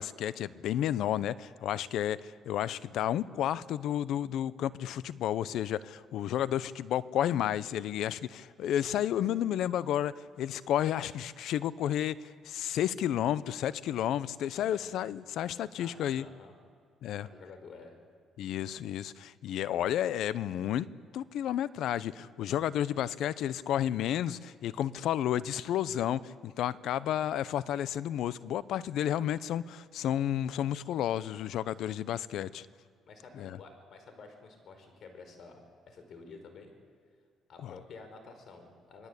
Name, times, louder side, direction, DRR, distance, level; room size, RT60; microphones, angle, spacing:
voice 1, 0.0-16.2 17.0-17.3 18.4-20.9 21.1-32.7 33.4-33.6 37.6-37.7, left 11 dB, 75° left, 17 dB, 0.8 m, -31 dB
voice 2, 14.5-14.9 15.7-16.5 17.0-18.0 33.1-36.7 37.5-39.1, left 4 dB, 60° left, 6 dB, 5.2 m, -51 dB
27.5 x 20.0 x 8.4 m, 2.3 s
cardioid pair, 85°, 0 cm